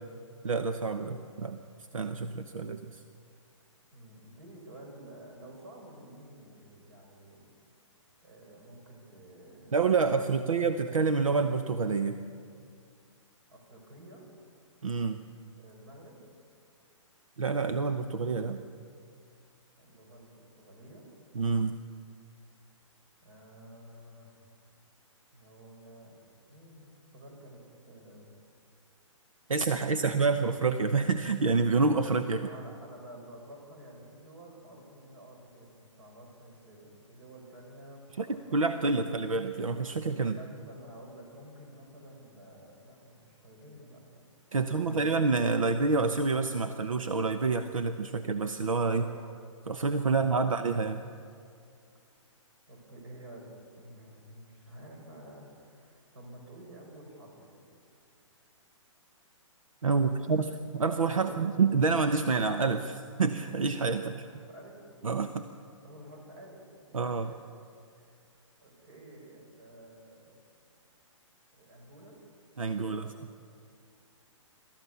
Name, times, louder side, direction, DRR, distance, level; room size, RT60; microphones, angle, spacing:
voice 1, 0.4-1.6 1.9-3.0 9.7-12.2 14.8-15.2 17.4-18.6 21.3-21.8 29.5-32.5 38.2-38.3 38.5-40.4 44.5-49.0 49.7-51.0 59.8-60.5 60.7-64.3 65.0-65.4 66.9-67.3 72.6-73.1, right 4 dB, 90° right, 8 dB, 1.0 m, -28 dB
voice 2, 3.9-7.5 8.2-10.6 13.5-14.3 15.6-16.2 19.8-21.1 23.2-24.5 25.3-27.6 27.9-28.3 29.5-30.6 32.3-39.1 40.2-44.2 44.6-45.2 48.9-49.2 52.7-57.7 59.9-60.3 61.1-61.5 64.0-64.9 65.8-66.6 66.9-67.4 67.9-70.4 71.5-72.2 72.7-73.1, right 1 dB, 55° right, 1 dB, 7.3 m, -51 dB
27.0 x 14.0 x 7.0 m, 2.3 s
hypercardioid pair, 135°, 17 cm